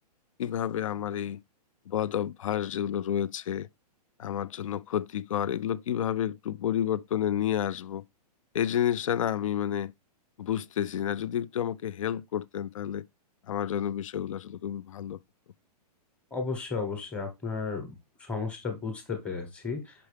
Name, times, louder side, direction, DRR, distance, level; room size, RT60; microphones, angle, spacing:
voice 1, 0.4-1.4 1.9-3.7 4.2-8.0 8.5-9.9 10.4-13.0 13.5-15.2, left 10 dB, 55° left, 0.4 m, -30 dB
voice 2, 16.3-17.9 18.2-19.9, left 4 dB, 5° left, 1.0 m, -33 dB
6.1 x 5.6 x 3.3 m
hypercardioid pair, 175°, 21 cm